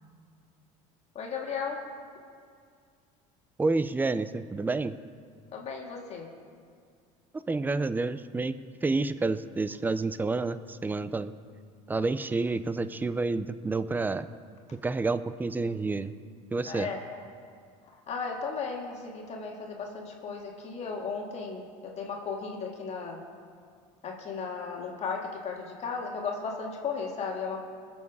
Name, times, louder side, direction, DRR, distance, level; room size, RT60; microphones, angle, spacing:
voice 1, 1.1-1.8 5.5-6.3 16.6-17.2 17.8-23.2 24.0-27.6, left 5 dB, 40° left, 0 dB, 1.9 m, -35 dB
voice 2, 3.6-4.9 7.5-8.5 8.8-11.3 11.9-14.3 14.8-16.1 16.5-16.9, right 3 dB, 10° right, 13 dB, 0.5 m, -29 dB
20.0 x 7.2 x 4.8 m, 2.2 s
supercardioid pair, 110°, 17 cm